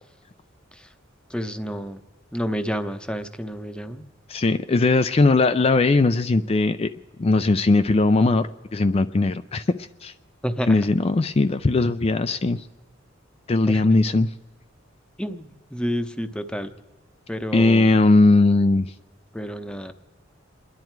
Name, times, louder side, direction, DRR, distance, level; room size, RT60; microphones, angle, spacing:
voice 1, 1.3-2.0 2.3-4.1 10.4-10.9 13.7-13.8 15.2-16.7 17.3-17.9 19.3-19.9, equal, 5° left, 9 dB, 0.8 m, -30 dB
voice 2, 4.3-6.9 7.2-10.1 10.7-12.6 13.5-14.3 17.5-18.9, left 3 dB, 30° left, 9 dB, 0.4 m, -19 dB
29.0 x 11.0 x 4.6 m, 1.4 s
head